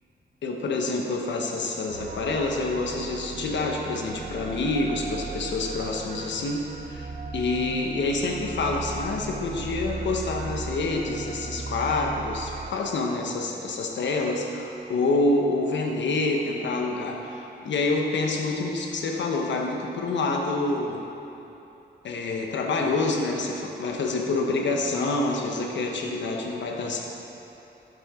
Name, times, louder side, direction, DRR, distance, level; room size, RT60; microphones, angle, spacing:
voice 1, 0.4-21.0 22.0-27.0, left 3 dB, 85° left, 1 dB, 1.1 m, -27 dB
sound 1, 1.9-12.7, right 4 dB, 50° right, 0.7 m, -37 dB
12.0 x 8.0 x 3.7 m, 3.0 s
cardioid pair, 100°, 18 cm